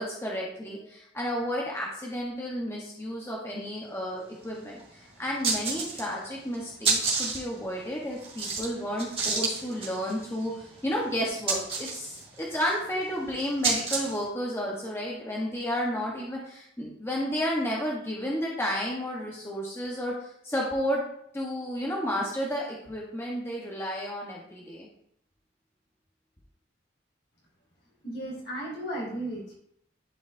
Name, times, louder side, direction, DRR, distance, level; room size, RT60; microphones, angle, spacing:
voice 1, 0.0-21.0 21.3-24.9, equal, 15° left, -3 dB, 1.0 m, -32 dB
sound 1, 4.4-4.5 4.8-4.9 5.3-6.3 6.5-14.3, right 4 dB, 30° right, 1.9 m, -30 dB
voice 2, 28.0-29.5, right 1 dB, 60° left, -3 dB, 2.8 m, -35 dB
11.0 x 4.9 x 2.6 m, 0.72 s
head